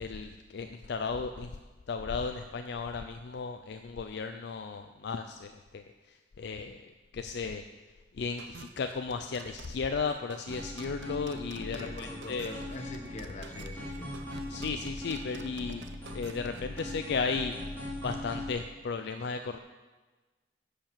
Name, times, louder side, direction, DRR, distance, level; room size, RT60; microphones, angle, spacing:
voice 1, 0.0-1.5 1.9-5.8 6.4-6.8 7.1-7.6 8.2-12.6 14.5-15.8 16.1-17.6 18.0-19.6, left 4 dB, 65° left, 7 dB, 0.4 m, -35 dB
sound 1, 8.4-16.9, right 4 dB, 70° right, 0.7 m, -49 dB
sound 2, 10.5-18.5, left 1 dB, 10° left, 2.1 m, -40 dB
voice 2, 11.7-14.1, left 2 dB, 40° left, 4 dB, 1.2 m, -43 dB
10.5 x 5.1 x 7.2 m, 1.3 s
head